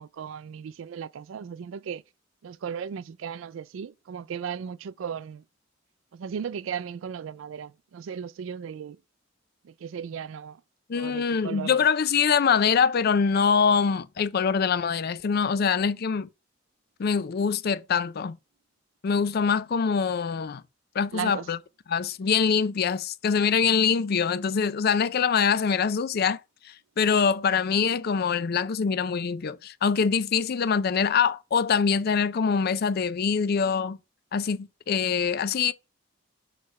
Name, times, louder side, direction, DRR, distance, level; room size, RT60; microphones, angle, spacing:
voice 1, 0.0-2.0 2.4-5.4 6.1-9.0 9.6-10.6 10.9-11.8 21.1-21.4, right 7 dB, 85° right, 0.4 m, -36 dB
voice 2, 10.9-16.3 17.0-18.4 19.0-20.6 20.9-21.6 21.9-26.4 26.6-34.0 34.3-35.7, left 6 dB, 50° left, 0.4 m, -24 dB
6.6 x 3.2 x 5.2 m
head